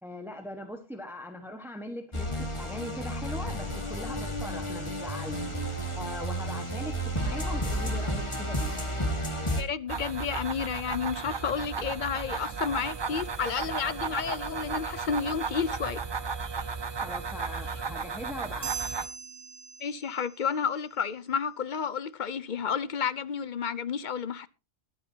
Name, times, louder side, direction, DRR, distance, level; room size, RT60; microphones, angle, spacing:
voice 1, 0.0-5.5 5.9-8.7 17.0-18.9, left 1 dB, ahead, 1.3 m, -40 dB
sound 1, 2.1-9.6, equal, 25° left, 1.9 m, -32 dB
voice 2, 9.6-16.0 19.8-24.5, left 6 dB, 50° left, 0.8 m, -31 dB
sound 2, 9.9-19.1, right 5 dB, 30° right, 0.5 m, -34 dB
sound 3, 18.6-20.5, right 6 dB, 50° right, 1.2 m, -39 dB
21.5 x 8.7 x 2.8 m
omnidirectional pair, 1.1 m